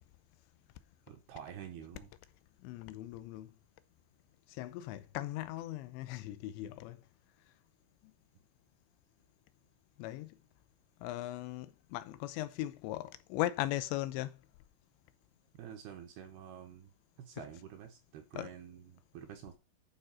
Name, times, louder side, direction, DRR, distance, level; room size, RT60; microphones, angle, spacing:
voice 1, 1.1-2.1 15.5-16.9 17.2-19.6, right 9 dB, 75° right, 2.5 m, -48 dB
voice 2, 2.6-3.5 4.5-7.0 10.0-10.4 11.0-14.4 18.4-18.5, left 15 dB, 85° left, 2.8 m, -38 dB
11.5 x 3.8 x 5.9 m
omnidirectional pair, 5.3 m